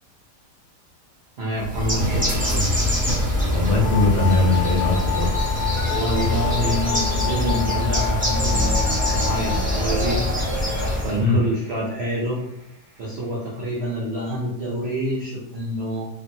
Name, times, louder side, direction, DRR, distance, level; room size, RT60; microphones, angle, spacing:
voice 1, 1.4-2.6 5.9-10.2 11.0-12.4 13.0-16.1, right 1 dB, 75° right, -5 dB, 0.5 m, -27 dB
Bird, 1.6-11.2, left 1 dB, 15° right, 0.3 m, -24 dB
sound 1, 2.0-13.0, right 1 dB, 30° right, 0.8 m, -34 dB
voice 2, 3.5-5.3 11.2-11.4, left 3 dB, 85° left, -2 dB, 1.4 m, -20 dB
sound 2, 3.8-9.6, left 16 dB, 65° left, 0.9 m, -30 dB
2.8 x 2.5 x 2.6 m, 0.83 s
omnidirectional pair, 1.8 m